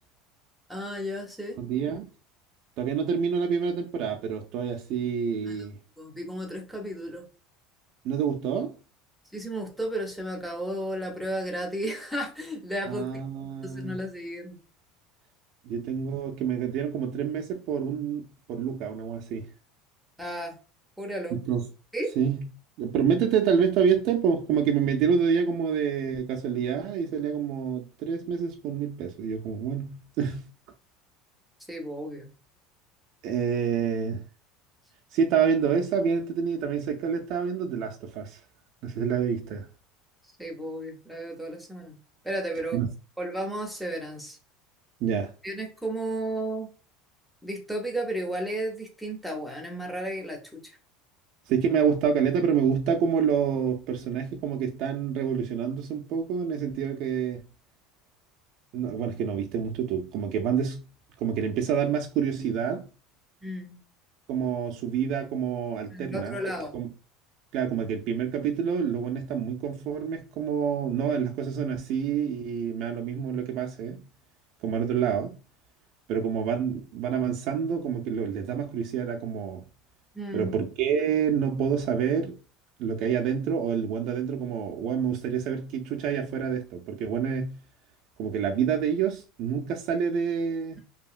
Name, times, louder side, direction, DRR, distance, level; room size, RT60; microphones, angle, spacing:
voice 1, 0.7-1.6 5.5-5.7 6.0-7.2 9.3-13.1 13.6-14.6 20.2-20.6 21.0-21.4 21.9-22.1 31.7-32.3 40.4-42.0 42.2-42.8 43.2-44.4 45.4-46.7 47.4-50.6 63.4-63.8 65.9-66.8 80.1-80.5, right 1 dB, ahead, 0.5 m, -33 dB
voice 2, 1.6-2.1 2.8-5.7 8.0-8.7 12.9-14.0 15.7-19.5 21.3-21.7 22.2-22.5 22.8-30.4 33.2-34.2 35.1-38.4 38.8-39.7 42.7-42.9 45.0-45.3 51.5-57.5 58.7-60.8 61.2-62.9 64.3-66.4 66.7-66.9 67.5-74.0 74.6-75.4 76.1-79.6 80.3-82.4 82.8-87.6 88.2-90.8, right 7 dB, 50° right, 0.3 m, -27 dB
2.8 x 2.7 x 2.4 m
cardioid pair, 165°, 0 cm